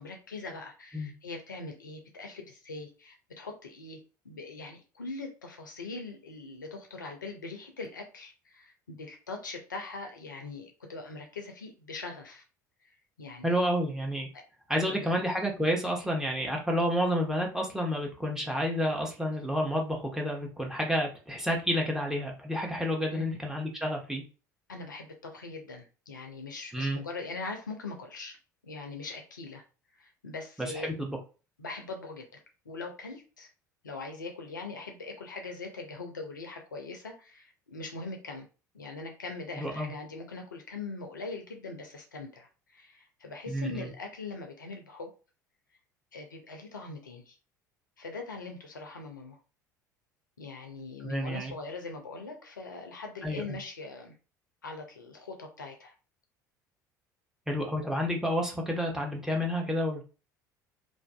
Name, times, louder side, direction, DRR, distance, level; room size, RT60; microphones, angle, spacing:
voice 1, 0.0-4.0 4.2-12.4 13.2-13.6 14.3-14.4 14.8-15.2 23.1-23.4 24.7-28.4 28.6-29.6 30.0-30.9 31.6-33.5 33.8-38.5 38.7-45.1 46.1-47.4 48.0-49.4 50.4-54.1 54.6-55.9, left 3 dB, 80° left, 4 dB, 0.5 m, -41 dB
voice 2, 13.4-14.3 14.7-24.2 26.7-27.0 30.6-31.2 39.5-39.9 43.5-43.9 51.0-51.5 53.2-53.6 57.5-60.0, equal, 5° right, 0 dB, 0.8 m, -30 dB
2.5 x 2.4 x 2.2 m, 0.33 s
figure-of-eight pair, 65°, 10 cm